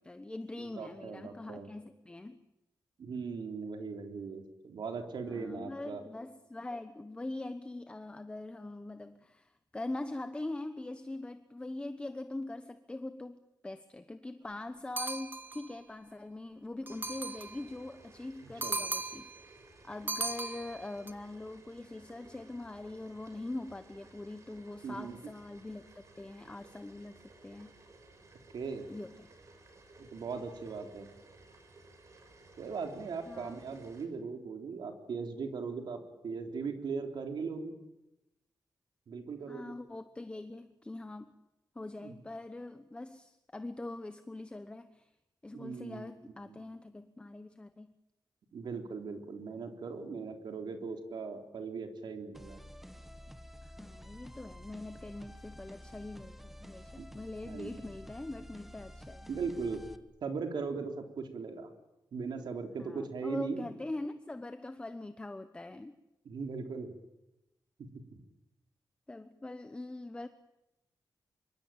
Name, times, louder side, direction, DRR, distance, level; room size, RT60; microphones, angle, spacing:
voice 1, 0.0-2.4 5.3-19.5 19.8-27.7 28.9-29.3 33.3-33.6 39.5-41.3 41.7-45.1 45.4-47.9 53.6-59.3 62.8-65.9 69.1-70.3, left 2 dB, 15° left, 9 dB, 1.1 m, -43 dB
voice 2, 0.6-1.7 3.0-6.0 18.6-18.7 24.8-25.2 28.5-28.8 30.0-31.1 32.6-37.8 39.1-39.7 42.0-42.2 45.5-46.0 46.5-46.6 48.5-52.6 57.0-57.1 57.5-57.7 59.3-59.8 60.2-61.7 62.1-63.7 66.3-66.9 67.8-68.2, right 5 dB, 75° right, 5 dB, 3.7 m, -39 dB
sound 1, 15.0-15.7 16.9-17.6 18.6-19.4 20.1-21.1, right 3 dB, 25° right, 1.6 m, -37 dB
sound 2, 16.9-34.1, right 2 dB, 40° right, 5.9 m, -58 dB
sound 3, 52.3-60.0, equal, 5° right, 1.5 m, -50 dB
26.0 x 24.0 x 8.9 m, 0.91 s
wide cardioid pair, 165°, 8 cm